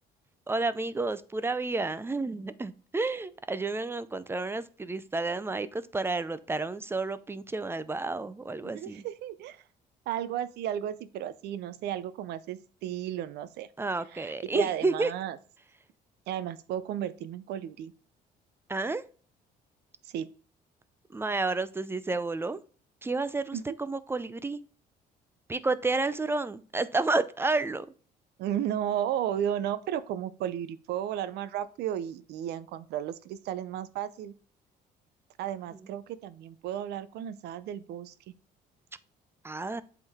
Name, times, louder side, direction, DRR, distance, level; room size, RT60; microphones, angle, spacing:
voice 1, 0.5-9.0 13.8-15.1 18.7-19.0 21.1-22.6 23.0-24.6 25.5-27.9 39.4-39.8, right 3 dB, 15° right, 15 dB, 0.5 m, -30 dB
voice 2, 8.6-9.6 10.1-13.7 14.1-15.4 16.3-17.9 20.0-20.3 23.5-23.6 28.4-34.3 35.4-38.1, right 10 dB, 75° right, 14 dB, 0.6 m, -34 dB
8.0 x 3.8 x 3.5 m, 0.41 s
cardioid pair, 110°, 17 cm